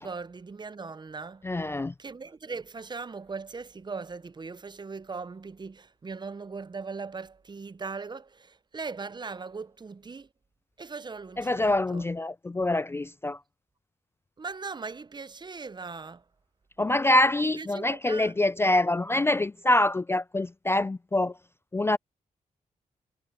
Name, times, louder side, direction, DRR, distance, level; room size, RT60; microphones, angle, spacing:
voice 1, 0.0-1.5 2.0-10.3 10.8-12.1 14.4-16.2 17.4-18.4, right 4 dB, 35° right, 0.6 m, -39 dB
voice 2, 1.4-1.9 11.4-13.4 16.8-21.3 21.7-22.0, left 1 dB, 20° left, 0.3 m, -25 dB
cardioid pair, 70°, 14 cm